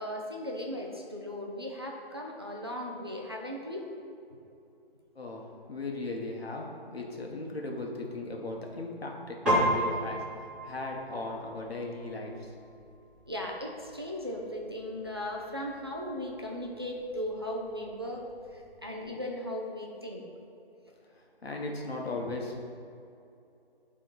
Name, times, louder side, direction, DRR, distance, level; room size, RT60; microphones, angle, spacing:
voice 1, 0.0-3.9 4.3-4.4 13.3-18.2 18.5-20.2, left 1 dB, 25° right, -1 dB, 0.4 m, -37 dB
voice 2, 5.1-12.5 21.1-22.7, left 2 dB, 80° left, 0 dB, 1.5 m, -37 dB
Piano, 9.5-19.1, equal, ahead, 1.6 m, -36 dB
9.2 x 3.7 x 3.9 m, 2.6 s
figure-of-eight pair, 160°, 30 cm